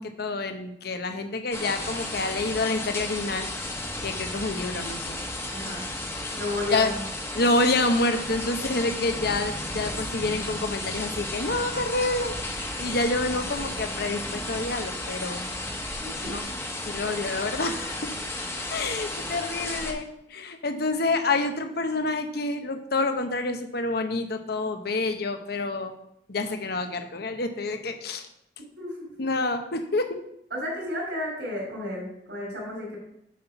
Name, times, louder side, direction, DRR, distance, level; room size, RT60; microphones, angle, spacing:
voice 1, 0.0-3.5 4.0-5.2 6.7-6.9 7.3-15.4 16.3-16.5 16.9-18.1 18.7-25.9 26.3-28.2 29.2-30.2, left 2 dB, 60° left, 7 dB, 0.9 m, -28 dB
sound 1, 1.5-19.9, left 1 dB, 15° left, 1.1 m, -33 dB
voice 2, 5.5-5.9 6.3-7.1 16.0-16.3 28.8-29.1 30.5-33.0, left 1 dB, 65° right, -6 dB, 2.8 m, -32 dB
7.6 x 5.7 x 5.7 m, 0.77 s
head